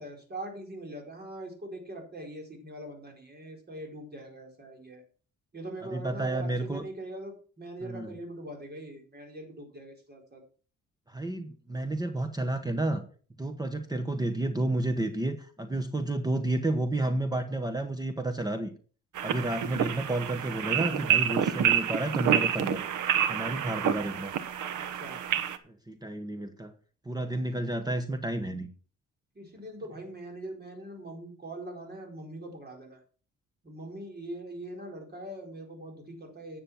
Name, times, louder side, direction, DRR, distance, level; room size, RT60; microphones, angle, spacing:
voice 1, 0.0-5.0 5.5-10.4 24.7-25.2 29.3-33.0 33.6-36.6, right 1 dB, 35° right, 2 dB, 4.5 m, -42 dB
voice 2, 5.9-6.8 7.8-8.1 11.1-13.0 13.4-18.7 19.2-22.8 23.3-24.3 25.7-26.7 27.0-28.7, right 2 dB, 15° right, 7 dB, 1.2 m, -31 dB
sound 1, 19.1-25.6, right 9 dB, 80° right, 1.1 m, -28 dB
9.9 x 7.2 x 5.9 m, 0.40 s
cardioid pair, 90°, 30 cm